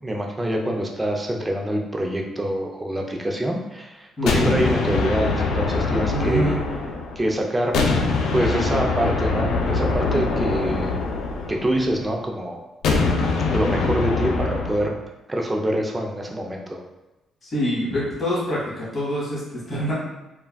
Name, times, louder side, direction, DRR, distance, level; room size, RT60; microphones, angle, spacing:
voice 1, 0.0-6.6 7.2-7.7 8.3-11.0 11.5-12.6 13.5-14.9 15.3-16.8, right 1 dB, 15° right, 1 dB, 0.5 m, -25 dB
voice 2, 4.2-4.6 6.1-6.6 17.4-19.9, equal, 35° left, -8 dB, 1.4 m, -26 dB
sound 1, 4.3-7.3 7.7-12.0 12.8-14.9, left 3 dB, 85° left, 0.4 m, -23 dB
3.3 x 2.3 x 2.2 m, 1.0 s
cardioid pair, 90°, 0 cm